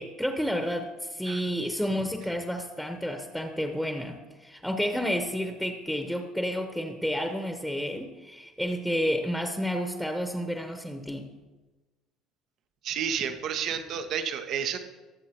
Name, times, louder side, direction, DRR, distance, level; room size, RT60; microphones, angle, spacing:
voice 1, 0.0-11.3, equal, ahead, 5 dB, 1.2 m, -30 dB
voice 2, 12.8-14.8, right 8 dB, 55° right, 8 dB, 1.0 m, -31 dB
21.5 x 7.4 x 3.0 m, 1.2 s
figure-of-eight pair, 60°, 0 cm